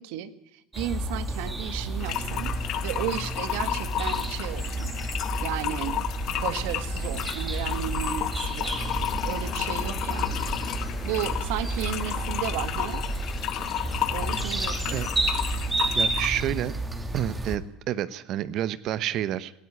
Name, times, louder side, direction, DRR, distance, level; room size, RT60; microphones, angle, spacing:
voice 1, 0.0-2.5 2.8-4.9 5.4-6.0 6.3-9.0 9.2-10.5 11.0-13.0 14.1-15.0, right 12 dB, 75° right, 13 dB, 1.7 m, -34 dB
sound 1, 0.7-17.6, right 2 dB, 10° right, 2.4 m, -31 dB
sound 2, 2.0-16.4, left 12 dB, 55° left, 1.6 m, -32 dB
sound 3, 8.5-15.5, left 5 dB, 25° left, 3.0 m, -47 dB
voice 2, 15.9-16.8 17.1-19.5, right 12 dB, 50° right, 17 dB, 0.9 m, -29 dB
18.0 x 14.5 x 9.9 m, 0.82 s
supercardioid pair, 125°, 0 cm